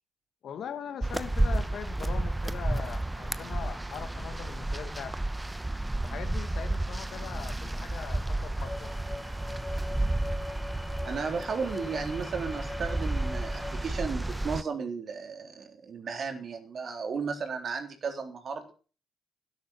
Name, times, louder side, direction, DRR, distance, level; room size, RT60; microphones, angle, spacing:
voice 1, 0.4-5.2 6.0-8.9, left 8 dB, 65° left, 1.8 m, -41 dB
sound 1, 1.0-14.6, right 1 dB, 15° right, 1.1 m, -32 dB
sound 2, 8.6-13.9, left 2 dB, 25° left, 1.7 m, -42 dB
voice 2, 11.1-18.7, right 5 dB, 55° right, 3.6 m, -34 dB
13.0 x 10.5 x 7.3 m
hypercardioid pair, 50°, 0 cm